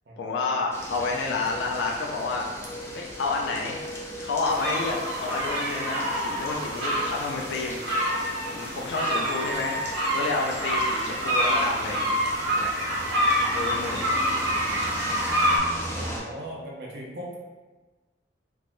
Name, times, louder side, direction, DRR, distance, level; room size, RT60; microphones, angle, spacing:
voice 1, 0.2-2.5 2.9-3.8 4.2-7.8 8.1-8.2 8.5-9.8 10.1-12.1 12.5-12.7 13.5-14.2, left 3 dB, 80° left, -1 dB, 0.3 m, -29 dB
sound 1, 0.7-16.2, equal, 15° left, 0.4 m, -37 dB
sound 2, 4.5-15.6, equal, 90° right, 0.9 m, -27 dB
voice 2, 15.9-17.4, right 1 dB, 65° right, -3 dB, 0.6 m, -38 dB
3.2 x 2.1 x 2.5 m, 1.2 s
head